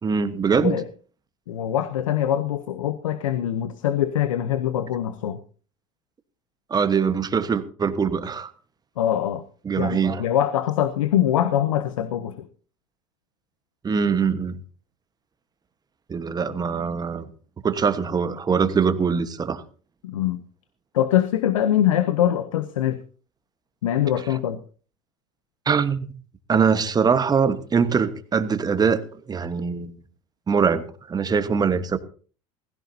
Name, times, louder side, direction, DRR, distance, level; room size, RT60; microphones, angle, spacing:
voice 1, 0.0-0.8 6.7-8.5 9.6-10.2 13.8-14.6 16.1-17.3 17.6-19.6 25.7-26.1 26.5-29.0 29.3-29.9 30.5-32.0, right 6 dB, 25° right, 1.3 m, -22 dB
voice 2, 1.5-5.4 9.0-9.4 9.8-12.5 20.0-20.4 20.9-23.0 23.8-24.6, left 11 dB, 90° left, 0.8 m, -23 dB
16.5 x 15.5 x 2.8 m
hypercardioid pair, 95°, 16 cm